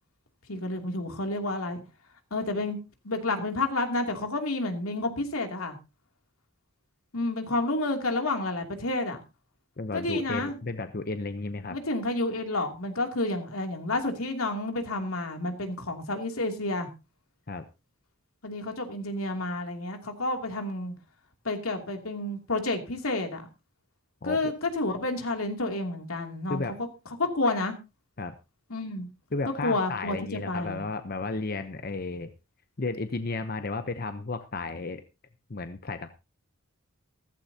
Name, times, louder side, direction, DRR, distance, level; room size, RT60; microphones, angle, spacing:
voice 1, 0.5-1.8 2.3-2.8 3.0-5.8 7.1-9.2 9.9-10.6 11.7-16.9 18.4-20.9 21.4-23.5 24.2-26.6 27.2-27.7 28.7-29.1 29.6-30.8, left 2 dB, 85° left, 4 dB, 2.8 m, -30 dB
voice 2, 9.8-11.8 17.5-17.6 24.2-24.5 26.5-26.8 28.2-28.3 29.3-32.3 32.8-35.0 35.5-36.1, left 3 dB, 45° left, 9 dB, 0.8 m, -33 dB
15.5 x 15.0 x 2.8 m, 0.28 s
head